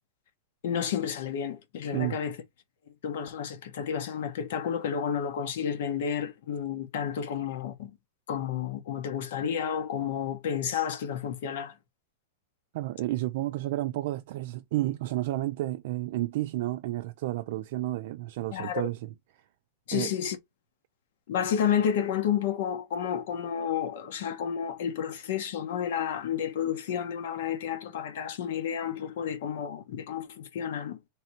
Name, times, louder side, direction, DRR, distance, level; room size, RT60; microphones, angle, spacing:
voice 1, 0.6-2.4 3.0-7.9 8.3-11.7 18.5-18.9 19.9-20.4 21.3-31.0, left 8 dB, 60° left, 1.0 m, -31 dB
voice 2, 12.7-19.1 19.9-20.2, right 16 dB, 50° right, 0.3 m, -31 dB
3.3 x 2.8 x 4.3 m
supercardioid pair, 170°, 0 cm